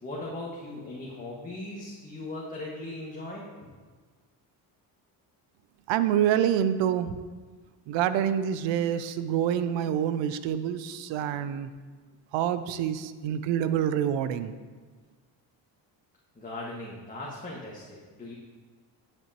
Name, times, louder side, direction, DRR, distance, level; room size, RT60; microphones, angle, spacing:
voice 1, 0.0-3.5 16.3-18.3, left 2 dB, 20° left, -5 dB, 1.6 m, -38 dB
voice 2, 5.9-7.2 7.9-11.7 12.3-14.5, right 10 dB, 85° right, 12 dB, 0.6 m, -27 dB
11.0 x 7.6 x 3.0 m, 1.4 s
cardioid pair, 90°, 44 cm